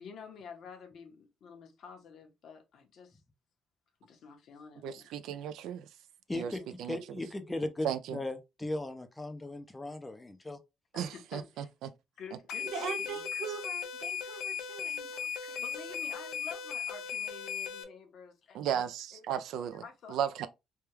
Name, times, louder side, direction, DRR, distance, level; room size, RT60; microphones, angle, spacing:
voice 1, 0.0-3.2 4.0-5.2 6.4-6.7 10.9-11.7 12.2-13.2 15.6-18.6 19.1-19.2 19.8-20.2, left 6 dB, 55° left, 0.8 m, -49 dB
voice 2, 4.8-5.8 6.3-6.5 6.8-7.0 7.8-8.2 10.9-11.9 18.5-19.8 20.1-20.5, right 9 dB, 80° right, 0.4 m, -35 dB
voice 3, 6.3-10.6, left 2 dB, 10° left, 0.4 m, -37 dB
sound 1, 12.5-17.8, left 7 dB, 85° left, 0.5 m, -37 dB
voice 4, 12.6-15.6, right 6 dB, 55° right, 0.8 m, -41 dB
3.4 x 2.2 x 2.9 m
cardioid pair, 160°, 0 cm